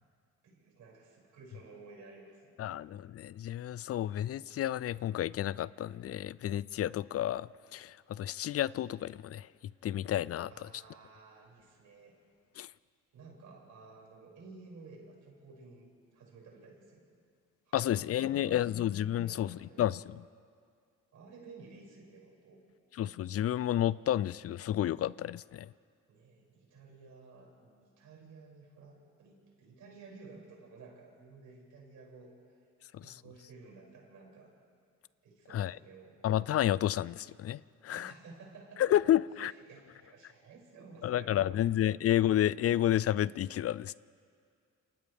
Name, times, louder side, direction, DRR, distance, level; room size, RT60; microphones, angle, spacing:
voice 1, 0.4-2.5 10.5-12.1 13.1-17.1 17.7-18.6 19.1-19.9 21.1-22.6 26.1-32.6 33.0-34.5 35.2-36.2 37.9-38.8 39.4-41.5, right 4 dB, 75° right, 6.6 m, -54 dB
voice 2, 2.6-9.5 9.8-10.5 12.6-12.7 17.7-20.2 23.0-25.7 32.9-33.2 35.5-35.8 36.2-38.1 38.8-39.5 41.0-43.9, left 12 dB, 50° left, 0.4 m, -31 dB
28.5 x 27.0 x 3.6 m
cardioid pair, 90°, 30 cm